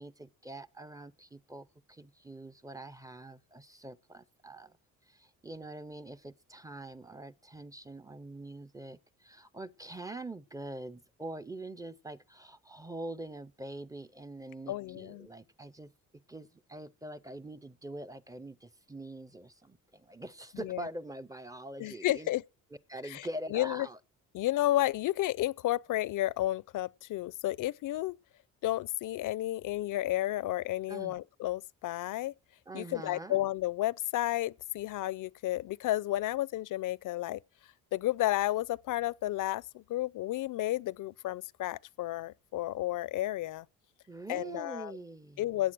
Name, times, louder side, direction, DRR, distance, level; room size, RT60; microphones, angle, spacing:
voice 1, 0.0-4.8 5.1-15.9 16.3-22.3 22.9-24.0 30.9-31.2 32.7-33.4 44.1-45.5, right 1 dB, 10° right, 0.6 m, -44 dB
voice 2, 14.7-15.3 20.5-20.8 21.8-22.4 23.1-23.9 24.3-28.1 28.6-32.3 32.7-37.4 37.9-43.7 44.3-44.9 45.4-45.7, left 15 dB, 70° left, 0.6 m, -32 dB
15.0 x 8.3 x 6.1 m
cardioid pair, 115°, 33 cm